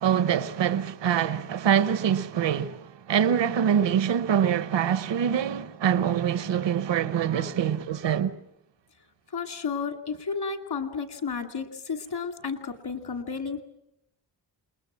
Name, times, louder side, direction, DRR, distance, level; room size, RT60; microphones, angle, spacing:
voice 1, 0.0-8.3, right 8 dB, 80° right, 1.0 m, -24 dB
voice 2, 9.3-13.6, left 5 dB, 60° left, 2.5 m, -32 dB
28.5 x 21.0 x 7.4 m
wide cardioid pair, 95°, 43 cm